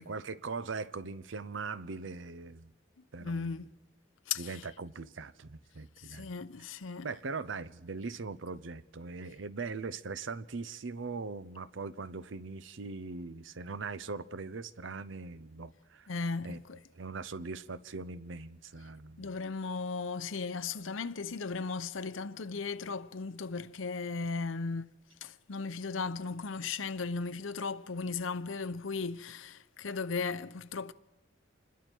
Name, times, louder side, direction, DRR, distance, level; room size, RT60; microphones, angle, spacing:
voice 1, 0.0-2.7 3.1-3.6 4.4-6.3 7.0-16.1 16.4-16.6 16.9-19.4, right 4 dB, 70° right, 0.7 m, -40 dB
voice 2, 3.2-3.7 4.3-4.6 6.0-7.1 16.1-16.8 19.2-24.8 25.2-30.9, left 4 dB, 85° left, 0.8 m, -36 dB
27.5 x 21.0 x 4.6 m
head